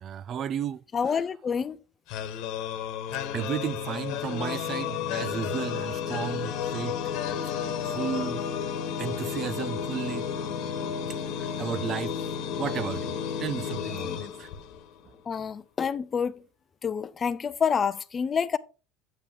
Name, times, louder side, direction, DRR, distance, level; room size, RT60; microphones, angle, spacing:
voice 1, 0.0-1.2 3.3-7.0 7.9-8.4 9.0-10.3 11.4-12.2 12.6-13.1 13.4-14.5, right 8 dB, 40° right, 0.4 m, -33 dB
voice 2, 0.9-1.8 15.3-16.4 16.8-18.6, left 6 dB, 30° left, 0.6 m, -28 dB
sound 1, 2.1-15.0, left 8 dB, 65° left, 1.3 m, -32 dB
8.5 x 7.4 x 3.6 m
supercardioid pair, 105°, 0 cm